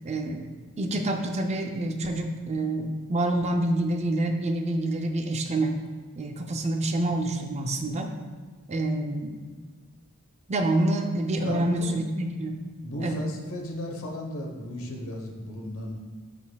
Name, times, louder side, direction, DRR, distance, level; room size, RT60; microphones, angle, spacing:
voice 1, 0.0-0.5 0.8-5.8 6.2-8.1 8.7-9.4 10.5-12.6 13.0-13.2, right 1 dB, 30° right, 4 dB, 0.4 m, -27 dB
voice 2, 11.4-11.9 12.8-16.0, left 1 dB, 65° left, 1 dB, 1.0 m, -35 dB
11.0 x 4.1 x 2.3 m, 1.5 s
head